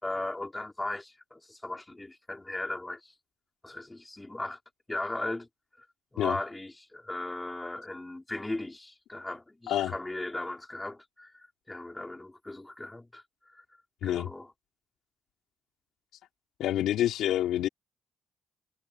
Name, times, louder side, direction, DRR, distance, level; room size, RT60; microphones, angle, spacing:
voice 1, 0.0-3.1 3.6-4.6 4.9-5.5 5.8-5.9 6.1-13.2 13.5-13.6 14.0-14.5, left 2 dB, 15° left, 4.5 m, -37 dB
voice 2, 16.6-17.7, left 12 dB, 85° left, 2.8 m, -27 dB
cardioid pair, 90°, 0 cm